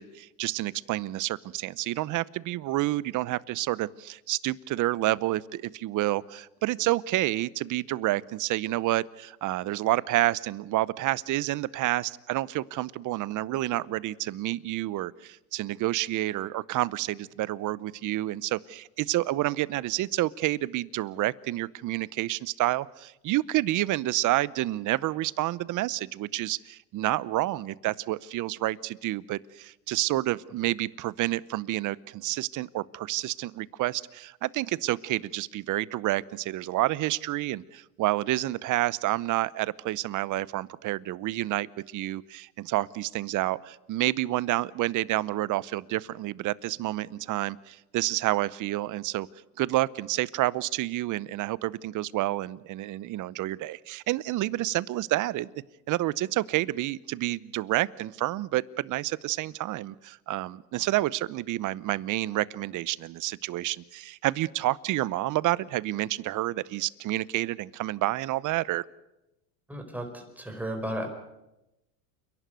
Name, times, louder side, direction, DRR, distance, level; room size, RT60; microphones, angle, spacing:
voice 1, 0.0-49.3 49.6-55.5 55.9-68.8, right 16 dB, 45° right, 22 dB, 0.8 m, -29 dB
voice 2, 69.7-71.1, equal, 5° right, 4 dB, 4.9 m, -34 dB
29.0 x 11.5 x 9.4 m, 0.94 s
supercardioid pair, 100°, 42 cm